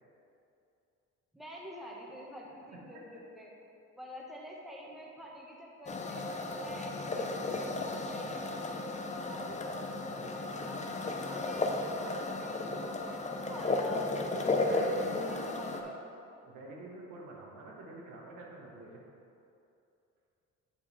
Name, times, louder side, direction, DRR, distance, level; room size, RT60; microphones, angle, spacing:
voice 1, 1.3-3.5 4.0-6.2 6.5-9.7 10.1-14.4 14.8-16.0, equal, ahead, -3 dB, 1.2 m, -49 dB
sound 1, 5.9-15.8, left 2 dB, 25° left, 0.6 m, -34 dB
voice 2, 10.1-10.5 14.7-15.9 16.4-19.0, right 2 dB, 85° right, -2 dB, 1.4 m, -48 dB
7.7 x 5.2 x 4.1 m, 2.7 s
cardioid pair, 95°, 30 cm